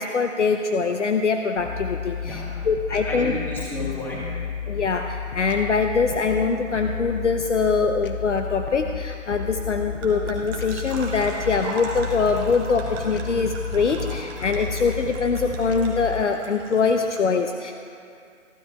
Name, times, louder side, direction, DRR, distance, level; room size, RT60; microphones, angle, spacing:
voice 1, 0.0-3.3 4.7-17.7, left 4 dB, 65° left, 5 dB, 0.8 m, -23 dB
sound 1, 1.6-16.2, left 7 dB, 45° left, 0.5 m, -32 dB
voice 2, 2.2-4.5, left 1 dB, 5° left, -5 dB, 1.4 m, -33 dB
sound 2, 4.9-17.2, right 3 dB, 15° right, 1.2 m, -40 dB
28.0 x 12.0 x 2.3 m, 2.4 s
figure-of-eight pair, 140°, 39 cm